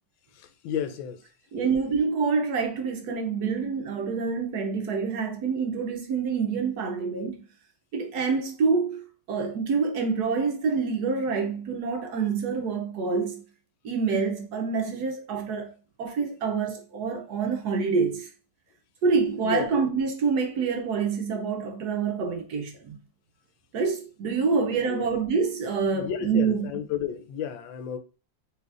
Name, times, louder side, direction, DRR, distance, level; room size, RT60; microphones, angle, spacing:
voice 1, 0.3-1.2 19.4-19.8 24.5-25.1 25.9-28.0, left 9 dB, 85° left, 1.4 m, -33 dB
voice 2, 1.5-7.4 7.9-13.4 13.8-15.7 16.0-18.3 19.0-23.0 23.7-26.7, right 5 dB, 70° right, 1.0 m, -27 dB
5.6 x 3.2 x 2.4 m
omnidirectional pair, 2.1 m